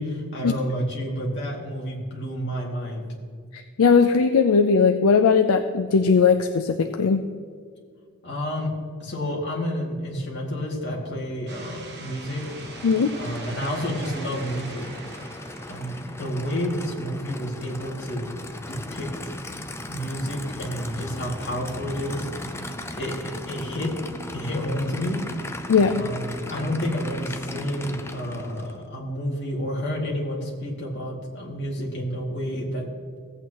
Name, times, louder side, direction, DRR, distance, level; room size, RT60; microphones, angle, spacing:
voice 1, 0.0-3.0 8.2-8.7 9.0-12.4 13.2-14.9 15.7-18.3 18.7-19.1 19.9-22.3 22.6-23.9 24.3-25.2 26.0-32.9, equal, 55° left, -3 dB, 2.3 m, -30 dB
voice 2, 3.5-7.2 12.8-13.1 25.7-26.0, left 5 dB, 75° left, 7 dB, 0.5 m, -19 dB
sound 1, 11.5-16.7, right 3 dB, 50° right, 1.3 m, -42 dB
Aircraft / Idling, 11.9-28.8, left 1 dB, 10° left, 0.5 m, -37 dB
16.0 x 8.5 x 3.0 m, 2.1 s
head